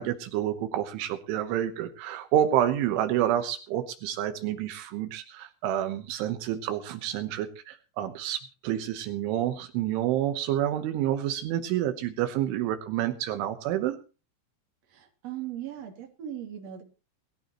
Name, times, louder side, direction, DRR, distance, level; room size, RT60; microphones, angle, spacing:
voice 1, 0.0-14.0, right 11 dB, 80° right, 8 dB, 3.5 m, -28 dB
voice 2, 14.9-16.8, right 11 dB, 40° right, 2 dB, 3.4 m, -38 dB
21.5 x 14.0 x 3.0 m, 0.33 s
omnidirectional pair, 5.6 m